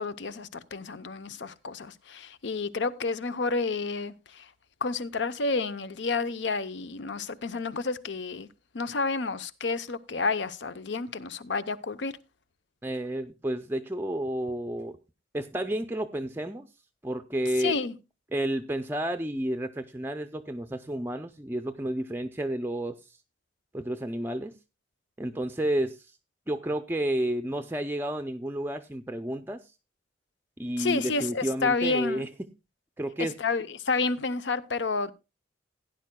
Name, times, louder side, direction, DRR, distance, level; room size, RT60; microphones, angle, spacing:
voice 1, 0.0-4.5 4.8-8.5 8.7-12.1 17.6-17.9 30.8-32.3 33.2-35.1, left 4 dB, 75° left, 0.7 m, -30 dB
voice 2, 12.8-15.0 15.3-16.7 17.0-17.8 18.3-23.2 23.7-24.5 25.2-26.2 26.5-29.7 30.6-32.3 33.0-33.4, right 1 dB, 10° right, 0.4 m, -31 dB
16.5 x 10.0 x 2.2 m
head